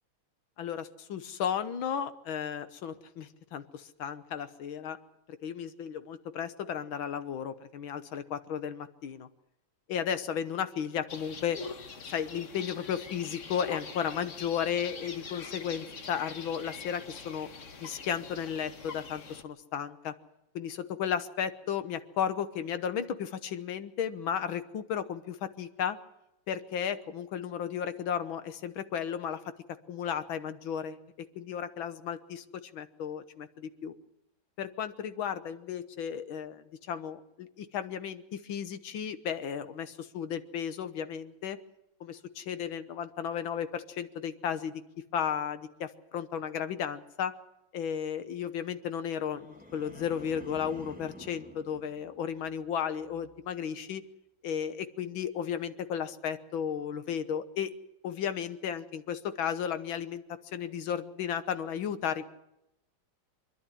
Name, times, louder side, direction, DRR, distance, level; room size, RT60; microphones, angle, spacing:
voice 1, 0.6-5.0 5.3-9.3 9.9-11.6 12.1-17.5 17.8-20.1 20.6-26.0 26.5-29.5 29.9-33.9 34.6-41.6 42.0-44.7 45.1-47.4 47.7-54.0 54.4-57.7 58.0-62.2, left 8 dB, 70° left, 12 dB, 1.7 m, -34 dB
sound 1, 11.1-19.4, left 5 dB, 45° left, 1.3 m, -44 dB
sound 2, 49.2-52.6 53.0-53.4, equal, 5° right, 1.6 m, -50 dB
25.5 x 11.5 x 9.8 m, 0.87 s
omnidirectional pair, 2.4 m